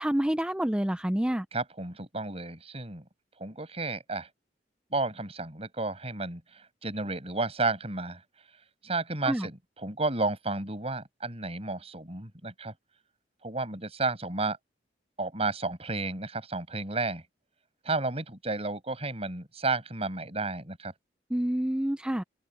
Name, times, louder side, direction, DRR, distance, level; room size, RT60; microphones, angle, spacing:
voice 1, 0.0-1.5 9.3-9.5 21.3-22.2, right 1 dB, 5° right, 0.5 m, -28 dB
voice 2, 1.5-3.0 3.4-4.3 4.9-8.2 8.8-12.7 13.4-14.6 15.2-17.2 17.8-20.9, right 3 dB, 35° right, 6.8 m, -32 dB
open air
head